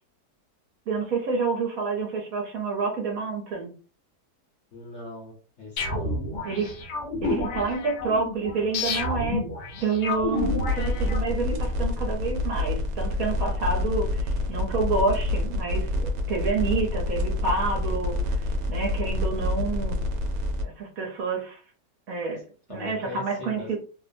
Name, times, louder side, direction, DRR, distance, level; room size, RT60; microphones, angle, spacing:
voice 1, 0.9-3.7 6.4-6.8 7.2-9.5 9.8-18.2 18.7-20.0 20.6-21.6 22.1-22.4 22.7-23.8, right 4 dB, 60° right, 0 dB, 1.2 m, -28 dB
voice 2, 4.7-6.2 16.7-16.9 22.7-23.8, left 2 dB, 55° left, -2 dB, 0.9 m, -40 dB
sound 1, 5.8-11.6, left 2 dB, 75° left, 1.2 m, -30 dB
sound 2, 10.4-20.6, left 2 dB, 80° right, 1.2 m, -27 dB
3.1 x 2.0 x 2.6 m, 0.38 s
omnidirectional pair, 1.8 m